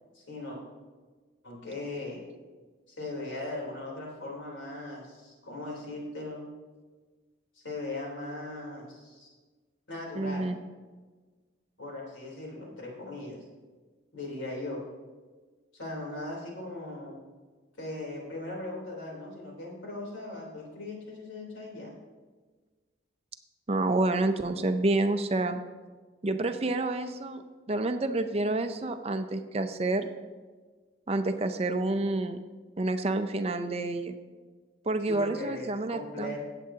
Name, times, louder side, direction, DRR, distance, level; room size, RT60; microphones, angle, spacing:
voice 1, 0.1-0.6 1.4-2.2 2.9-6.4 7.5-9.3 9.9-10.5 11.8-13.4 14.1-14.8 15.7-17.2 17.8-21.9 35.0-36.4, left 2 dB, 85° left, -2 dB, 3.4 m, -39 dB
voice 2, 10.2-10.6 23.7-25.6 26.2-27.4 27.7-30.1 31.1-32.4 32.8-34.2 34.9-36.4, right 2 dB, 30° right, 8 dB, 0.5 m, -28 dB
17.5 x 7.7 x 2.8 m, 1.4 s
head